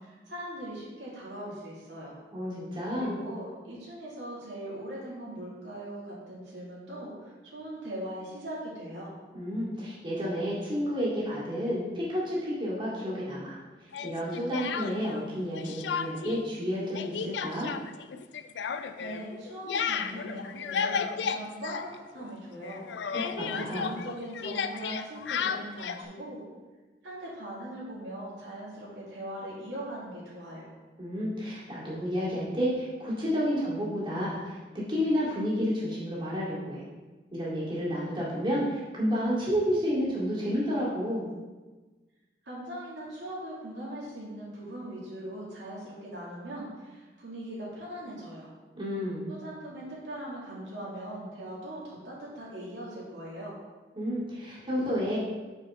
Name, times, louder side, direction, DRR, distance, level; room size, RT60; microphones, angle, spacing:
voice 1, 0.0-2.1 2.9-9.1 19.0-23.1 23.4-26.4 27.0-30.7 42.4-48.5 49.3-53.6, right 1 dB, 90° right, -6 dB, 2.1 m, -40 dB
voice 2, 2.3-3.2 9.3-13.6 14.0-17.7 23.4-23.9 31.0-34.6 34.9-36.8 37.3-41.2 48.7-49.4 54.0-55.2, equal, 30° right, -8 dB, 2.1 m, -30 dB
Speech, 13.9-15.2 15.5-16.4 16.7-22.4 22.6-26.0, left 6 dB, 75° left, 0.4 m, -33 dB
6.6 x 5.4 x 3.6 m, 1.3 s
head